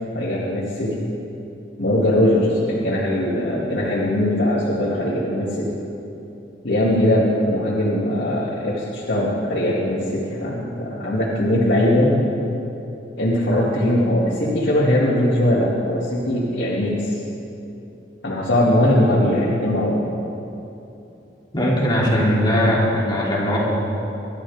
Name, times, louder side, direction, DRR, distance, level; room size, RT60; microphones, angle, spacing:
voice 1, 0.1-1.0 1.8-5.7 6.6-12.2 13.2-17.2 18.2-20.0, left 1 dB, 70° left, -8 dB, 2.4 m, -20 dB
voice 2, 21.5-23.6, equal, 25° left, -5 dB, 3.1 m, -19 dB
25.5 x 13.0 x 3.6 m, 2.9 s
head